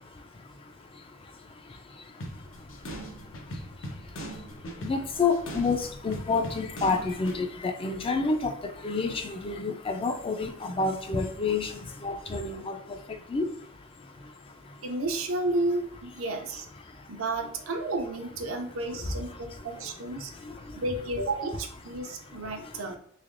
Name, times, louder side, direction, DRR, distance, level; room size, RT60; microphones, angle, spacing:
sound 1, 2.2-7.4, equal, 70° left, 0.7 m, -40 dB
voice 1, 4.8-8.5 8.8-11.7 12.0-12.7 13.3-13.4, left 4 dB, 25° left, 6 dB, 0.4 m, -28 dB
voice 2, 14.8-16.6 17.1-20.3 20.7-23.0, right 2 dB, 80° right, 3 dB, 0.6 m, -32 dB
3.4 x 3.3 x 2.4 m, 0.65 s
head